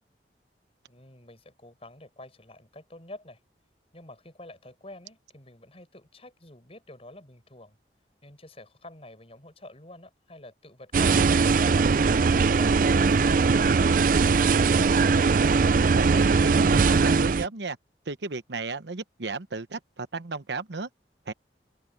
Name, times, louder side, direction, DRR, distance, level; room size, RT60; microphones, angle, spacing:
voice 1, 0.9-3.4 3.9-7.8 8.2-12.0 12.4-15.1, left 1 dB, 35° left, 7.5 m, -48 dB
sound 1, 10.9-17.5, right 4 dB, 50° right, 0.5 m, -20 dB
voice 2, 15.9-17.8 18.1-20.9 21.3-21.4, right 4 dB, 75° right, 1.0 m, -34 dB
open air
head